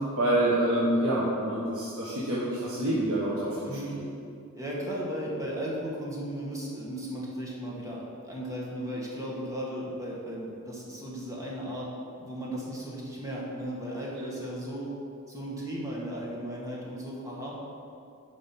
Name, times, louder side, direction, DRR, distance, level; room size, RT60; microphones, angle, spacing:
voice 1, 0.1-3.7 3.9-4.1 14.1-14.2, right 1 dB, 75° right, -7 dB, 1.3 m, -27 dB
voice 2, 3.6-4.0 4.5-11.9 12.2-14.9 15.3-17.5, equal, 15° right, -4 dB, 1.6 m, -36 dB
7.4 x 5.4 x 5.8 m, 2.6 s
head